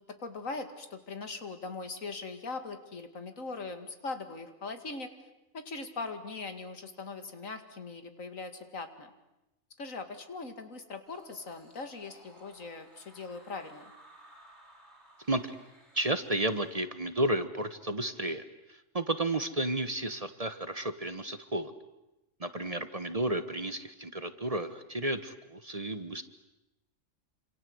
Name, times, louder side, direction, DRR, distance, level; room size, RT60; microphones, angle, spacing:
voice 1, 0.0-5.1 5.5-9.1 9.8-13.9 22.6-22.7, left 3 dB, 80° left, 8 dB, 2.6 m, -40 dB
sound 1, 11.1-16.7, right 1 dB, 55° right, 8.0 m, -58 dB
voice 2, 15.9-18.4 18.7-21.7 22.4-26.2, right 1 dB, 30° right, 11 dB, 1.3 m, -32 dB
27.5 x 26.5 x 7.9 m, 0.94 s
omnidirectional pair, 1.4 m